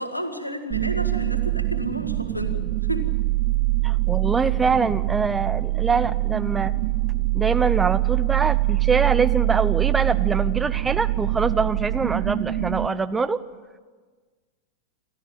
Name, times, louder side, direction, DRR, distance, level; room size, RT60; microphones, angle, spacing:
voice 1, 0.0-3.1, equal, 85° left, 7 dB, 2.2 m, -31 dB
sound 1, 0.7-12.9, right 19 dB, 45° right, 1.3 m, -24 dB
voice 2, 3.8-6.7 7.3-13.4, right 4 dB, 15° right, 12 dB, 1.0 m, -24 dB
29.0 x 13.5 x 9.1 m, 1.4 s
figure-of-eight pair, 90°, 0 cm